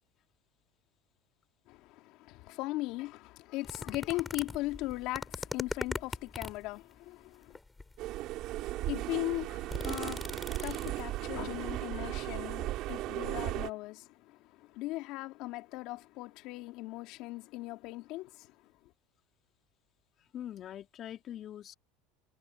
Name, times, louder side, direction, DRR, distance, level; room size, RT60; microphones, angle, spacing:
voice 1, 1.7-7.6 8.8-18.9, left 19 dB, 60° left, 3.0 m, -39 dB
sound 1, 3.6-6.7 7.5-8.0 8.6-8.7 9.0-11.2 11.5-11.6, left 3 dB, 10° left, 7.5 m, -40 dB
sound 2, 8.0-13.7, right 16 dB, 55° right, 3.5 m, -36 dB
voice 2, 20.3-21.8, left 11 dB, 40° left, 3.0 m, -43 dB
supercardioid pair, 110°, 0 cm